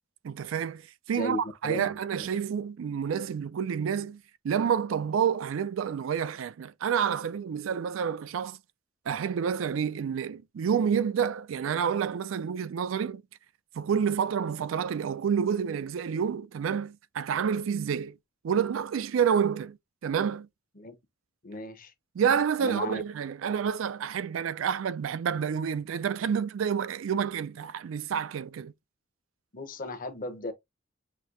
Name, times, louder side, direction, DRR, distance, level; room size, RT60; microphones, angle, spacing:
voice 1, 0.2-8.6 9.1-13.2 13.7-18.2 18.4-19.8 20.0-20.5 22.2-28.7, right 7 dB, 90° right, 0.4 m, -29 dB
voice 2, 1.1-1.9 2.2-2.3 20.8-21.0 21.4-21.9 22.6-23.0 29.5-30.5, left 2 dB, 45° left, 0.8 m, -36 dB
6.0 x 2.7 x 2.5 m
head